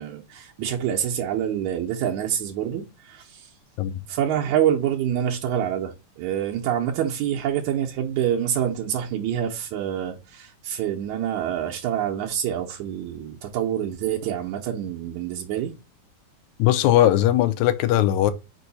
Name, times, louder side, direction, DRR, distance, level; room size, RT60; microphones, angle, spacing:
voice 1, 0.0-3.5 4.1-15.7, right 10 dB, 85° right, 2.2 m, -26 dB
voice 2, 16.6-18.3, left 13 dB, 80° left, 2.0 m, -19 dB
5.3 x 4.6 x 4.0 m
omnidirectional pair, 3.4 m